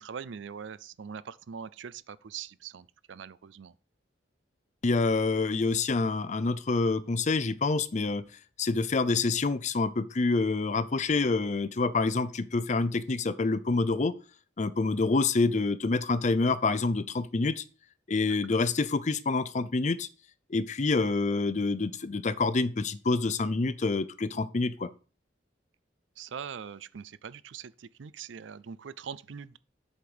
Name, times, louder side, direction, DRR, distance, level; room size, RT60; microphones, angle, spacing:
voice 1, 0.0-3.7 18.2-18.6 26.2-29.6, right 7 dB, 80° right, 0.5 m, -42 dB
voice 2, 4.8-8.2 8.6-14.1 14.6-17.6 18.1-20.1 20.5-24.9, left 3 dB, 40° left, 0.5 m, -27 dB
8.3 x 5.2 x 6.1 m
head